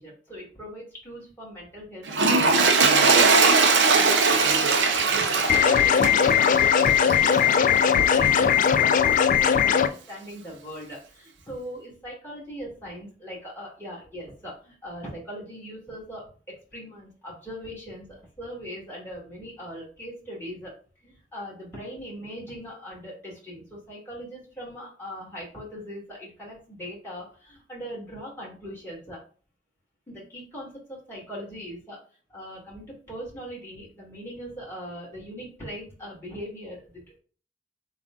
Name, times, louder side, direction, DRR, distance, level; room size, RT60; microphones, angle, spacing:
voice 1, 0.0-9.0 9.4-20.7 21.0-29.2 30.1-32.0 32.3-37.2, equal, 15° left, -5 dB, 2.3 m, -40 dB
Toilet flush, 2.1-7.6 8.2-8.4, right 4 dB, 85° right, 0.6 m, -20 dB
sound 1, 5.5-9.9, left 7 dB, 45° left, 0.3 m, -19 dB
6.8 x 2.5 x 2.5 m, 0.40 s
head